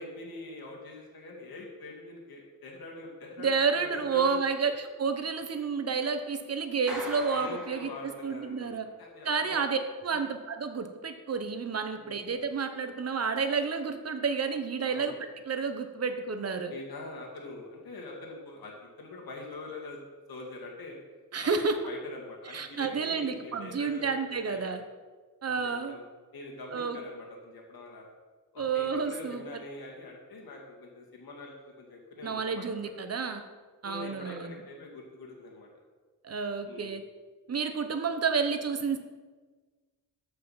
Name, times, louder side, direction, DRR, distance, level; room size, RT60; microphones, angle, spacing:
voice 1, 0.0-4.4 7.3-9.6 10.1-10.2 11.9-12.2 14.9-15.1 16.7-21.0 21.4-21.6 21.8-24.8 25.4-26.0 26.3-28.1 28.5-32.6 33.0-33.1 33.8-35.7 36.7-36.9, left 2 dB, 80° left, -1 dB, 2.2 m, -44 dB
voice 2, 3.4-8.8 9.2-15.1 15.5-16.7 21.3-21.7 22.5-24.8 25.4-25.9 26.7-27.0 28.6-29.4 32.2-33.4 33.8-34.6 36.2-37.0 37.5-39.0, right 5 dB, 45° right, 7 dB, 1.0 m, -30 dB
Clapping, 6.9-8.6, equal, 5° right, 2.8 m, -42 dB
14.0 x 5.7 x 5.7 m, 1.4 s
wide cardioid pair, 165°, 36 cm